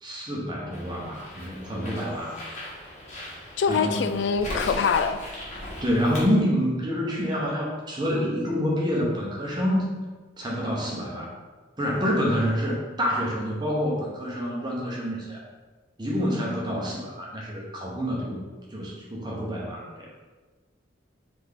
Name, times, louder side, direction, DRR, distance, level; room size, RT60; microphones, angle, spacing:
voice 1, 0.0-2.4 3.7-4.1 5.8-9.9 10.4-11.3 11.8-15.4 16.0-18.4 18.7-20.1, equal, 20° right, -4 dB, 0.9 m, -27 dB
Bird, 0.7-6.3, left 1 dB, 35° left, 1.1 m, -38 dB
voice 2, 3.6-5.2, left 6 dB, 70° left, 9 dB, 0.3 m, -24 dB
3.5 x 3.4 x 3.7 m, 1.3 s
head